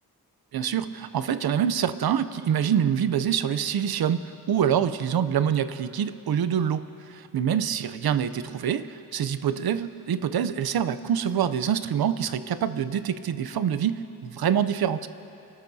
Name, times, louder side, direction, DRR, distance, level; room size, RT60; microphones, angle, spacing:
voice 1, 0.5-15.1, right 8 dB, 75° right, 13 dB, 0.6 m, -26 dB
27.0 x 13.0 x 2.7 m, 3.0 s
wide cardioid pair, 150°, 37 cm